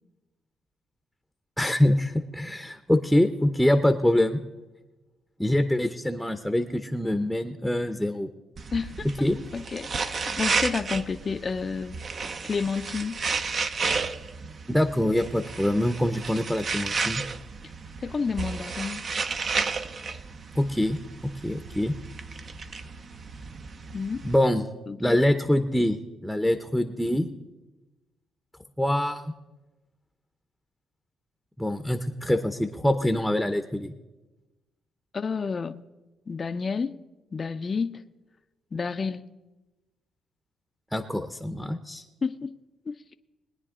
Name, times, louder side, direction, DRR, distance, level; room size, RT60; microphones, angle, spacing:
voice 1, 1.6-4.4 5.4-8.3 9.2-9.4 14.7-17.2 20.6-21.0 21.4-21.9 24.2-24.6 25.0-27.3 28.8-29.3 31.6-33.9 40.9-42.0, left 1 dB, ahead, 0.7 m, -24 dB
sound 1, 8.6-24.4, right 4 dB, 45° right, 0.7 m, -33 dB
voice 2, 8.7-9.1 9.5-12.0 12.4-13.2 18.0-19.0 23.9-24.3 24.9-25.2 35.1-35.8 36.3-37.0 37.3-38.0 38.7-39.3 42.2-42.6 42.9-43.1, left 5 dB, 35° left, 0.5 m, -30 dB
21.5 x 9.7 x 3.7 m
cardioid pair, 90°, 0 cm